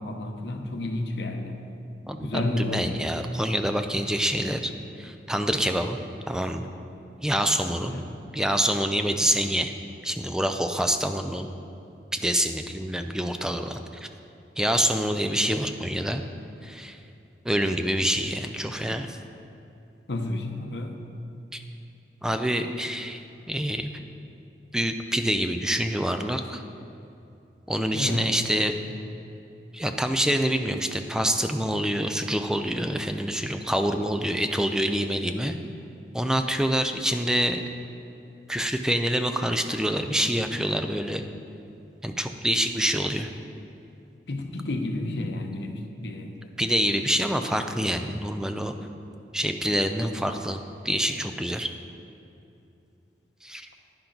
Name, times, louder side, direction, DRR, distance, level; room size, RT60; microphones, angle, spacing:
voice 1, 0.0-1.6 2.2-3.1 7.8-8.0 20.1-21.0 27.9-28.3 44.3-46.5, left 2 dB, 75° left, 4 dB, 0.9 m, -31 dB
voice 2, 2.1-4.7 5.0-6.0 6.3-6.6 7.2-7.9 8.3-9.7 10.0-11.5 12.1-14.1 14.6-16.2 16.6-17.0 17.4-19.2 21.5-21.6 22.2-23.2 23.5-24.0 24.7-26.6 27.7-28.8 29.7-35.5 36.1-37.6 38.5-41.2 42.0-43.3 46.6-48.7 49.3-51.7 53.4-53.7, equal, 5° right, 6 dB, 0.4 m, -26 dB
10.5 x 10.5 x 4.0 m, 2.7 s
head